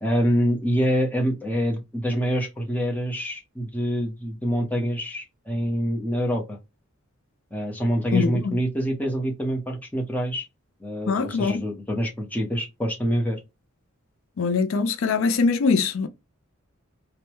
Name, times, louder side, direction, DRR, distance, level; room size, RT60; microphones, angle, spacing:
voice 1, 0.0-6.6 7.5-10.5 10.8-13.4, equal, 10° left, 0.7 m, -26 dB
voice 2, 8.1-8.6 11.1-11.6 14.4-16.1, left 4 dB, 65° left, 0.4 m, -22 dB
3.3 x 2.1 x 2.9 m
head